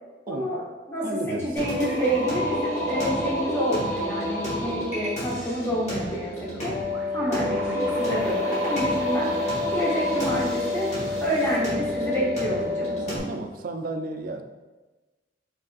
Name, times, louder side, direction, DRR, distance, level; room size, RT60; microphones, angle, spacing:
voice 1, 0.3-0.6 0.9-6.8 7.1-9.5 9.7-10.9 11.2-13.3, equal, 15° left, -5 dB, 0.9 m, -28 dB
voice 2, 1.0-1.6 13.3-14.4, right 2 dB, 50° right, 6 dB, 0.3 m, -33 dB
Singing, 1.6-13.2, equal, 40° left, 1.5 m, -30 dB
sound 1, 1.8-2.3 6.0-11.6, right 1 dB, 5° right, 1.3 m, -46 dB
Wind instrument woodwind instrument, 6.7-13.4, left 3 dB, 75° left, 0.5 m, -29 dB
5.0 x 3.3 x 2.4 m, 1.2 s
head